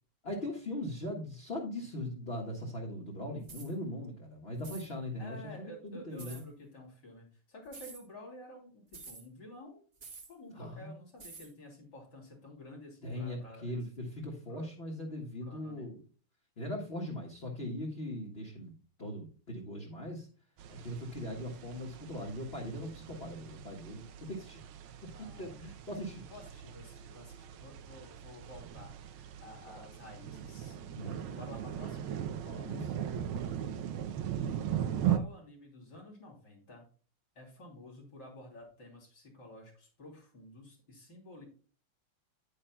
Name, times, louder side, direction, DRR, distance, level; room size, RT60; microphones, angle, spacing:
voice 1, 0.2-6.4 10.5-11.0 13.0-16.0 16.6-18.7 19.0-20.3 20.7-24.6 25.0-26.3 31.0-31.4 32.4-32.9, left 1 dB, 30° left, -3 dB, 1.7 m, -40 dB
sound 1, 3.4-3.7 4.6-4.9 6.2-6.4 7.7-8.0 8.9-9.2 10.0-10.3 11.2-11.5, right 4 dB, 35° right, 1.2 m, -48 dB
voice 2, 5.2-9.8 10.3-13.8 14.5-14.7 15.4-15.9 25.1-25.6 26.3-32.1 35.0-36.9 37.4-41.4, left 1 dB, 50° left, 0 dB, 3.8 m, -51 dB
sound 2, 20.6-35.2, right 10 dB, 75° right, 1.6 m, -39 dB
10.0 x 9.5 x 2.3 m, 0.38 s
omnidirectional pair, 2.4 m